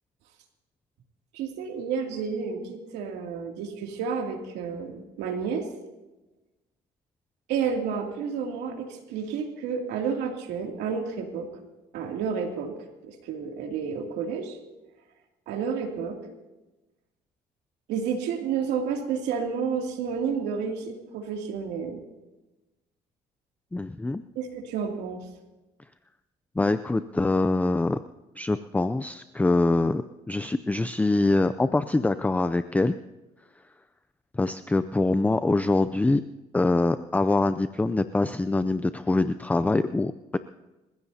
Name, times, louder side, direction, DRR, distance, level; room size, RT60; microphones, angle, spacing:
voice 1, 1.3-5.7 7.5-11.5 11.9-12.7 13.0-14.6 15.5-16.2 17.9-22.0 24.4-25.3, right 6 dB, 90° right, 2 dB, 2.7 m, -30 dB
voice 2, 23.7-24.2 26.6-28.0 28.4-33.0 34.3-36.2 36.5-40.4, left 2 dB, 10° left, 12 dB, 0.4 m, -24 dB
28.0 x 15.5 x 2.8 m, 1.1 s
cardioid pair, 110°, 17 cm